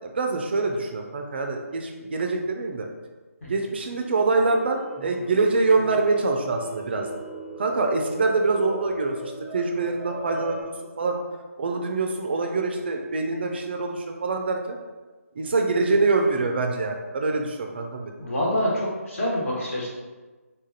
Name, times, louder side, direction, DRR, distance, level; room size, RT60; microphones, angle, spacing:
voice 1, 0.0-2.9 3.5-7.1 7.6-11.2 11.6-14.8 15.4-18.1, right 3 dB, 45° right, 3 dB, 0.4 m, -25 dB
sound 1, 3.9-10.6, right 1 dB, 10° right, 0.7 m, -38 dB
voice 2, 18.2-19.9, left 1 dB, 60° left, -6 dB, 1.4 m, -26 dB
3.7 x 2.5 x 2.7 m, 1.3 s
figure-of-eight pair, 155°, 8 cm